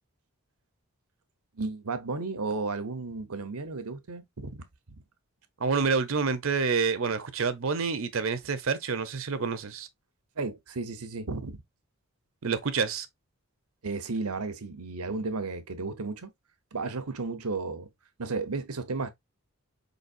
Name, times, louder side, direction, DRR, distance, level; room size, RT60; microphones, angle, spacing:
voice 1, 1.6-4.6 10.4-11.6 13.8-16.3 16.7-17.9 18.2-19.1, right 3 dB, 90° right, 1.0 m, -33 dB
voice 2, 5.6-9.9 12.4-13.1, right 5 dB, 60° right, 0.7 m, -28 dB
5.2 x 4.0 x 2.5 m
head